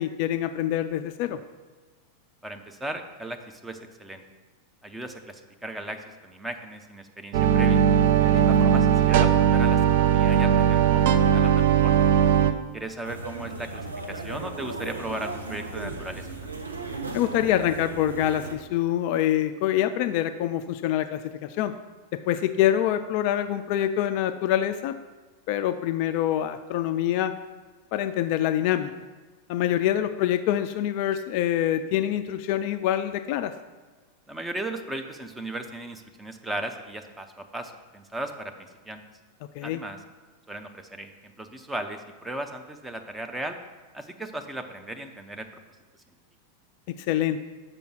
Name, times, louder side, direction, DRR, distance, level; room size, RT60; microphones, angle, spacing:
voice 1, 0.0-1.4 8.2-8.5 17.1-21.7 22.1-24.9 25.5-27.3 27.9-28.9 29.5-33.5 39.6-39.8 46.9-47.4, left 11 dB, 45° left, 10 dB, 0.3 m, -25 dB
voice 2, 2.4-4.2 4.8-7.8 8.3-12.0 12.7-16.6 34.3-38.5 38.9-39.0 39.6-40.0 40.5-43.6 43.9-45.5, right 1 dB, 10° right, 5 dB, 0.7 m, -36 dB
sound 1, 7.3-12.5, right 8 dB, 50° right, 0.5 m, -19 dB
sound 2, 13.0-18.5, right 3 dB, 80° right, 0.8 m, -36 dB
6.9 x 5.5 x 5.9 m, 1.4 s
figure-of-eight pair, 90°, 0 cm